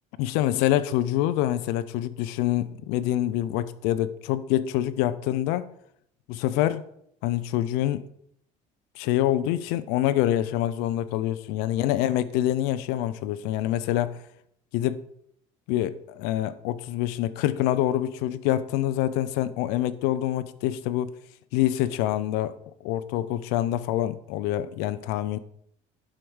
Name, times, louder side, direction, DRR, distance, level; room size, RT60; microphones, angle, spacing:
voice 1, 0.2-5.7 6.3-6.9 7.2-8.1 9.0-14.2 14.7-15.0 15.7-21.1 21.5-22.6 22.8-25.4, left 13 dB, 85° left, 0.7 m, -26 dB
11.5 x 5.1 x 6.2 m
cardioid pair, 145°, 16 cm